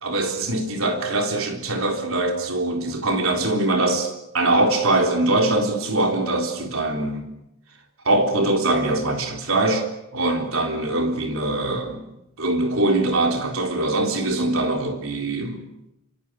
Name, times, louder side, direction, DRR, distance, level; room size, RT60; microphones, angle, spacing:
voice 1, 0.0-7.3 8.1-9.9 10.1-12.1 12.4-15.6, right 2 dB, 75° right, 3.8 m, -22 dB
26.5 x 25.5 x 6.5 m
head